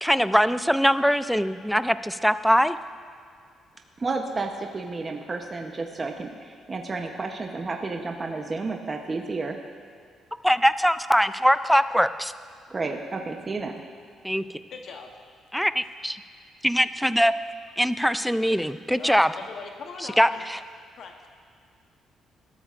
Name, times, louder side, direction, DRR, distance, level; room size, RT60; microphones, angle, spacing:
voice 1, 0.0-2.8 10.4-12.3 14.2-14.4 15.5-16.2 16.6-17.3 17.8-19.3 20.2-20.6, equal, ahead, 13 dB, 0.3 m, -22 dB
voice 2, 4.0-9.6 12.7-13.7, right 3 dB, 25° right, 3 dB, 0.8 m, -31 dB
voice 3, 14.7-15.1 19.0-20.4 21.0-21.3, left 5 dB, 60° left, 3 dB, 0.9 m, -40 dB
19.5 x 13.5 x 2.5 m, 2.2 s
cardioid pair, 135°, 0 cm